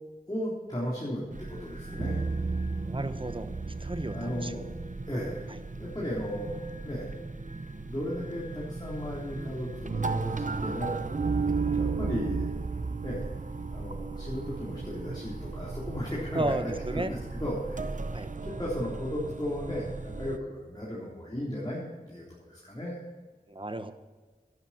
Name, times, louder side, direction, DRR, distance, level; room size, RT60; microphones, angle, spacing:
voice 1, 0.3-2.2 4.1-4.7 5.1-5.4 5.8-7.1 7.8-11.0 11.7-12.5 13.0-13.3 13.7-17.9 18.4-21.8 22.1-23.0, equal, 25° left, -7 dB, 3.8 m, -35 dB
sound 1, 1.3-20.4, right 4 dB, 55° right, 0.7 m, -34 dB
voice 2, 2.8-3.5 3.8-4.5 11.6-11.8 16.3-17.1 18.1-18.3 23.5-23.9, right 2 dB, 35° right, 9 dB, 1.0 m, -33 dB
12.0 x 11.0 x 4.4 m, 1.4 s
wide cardioid pair, 45°, 16 cm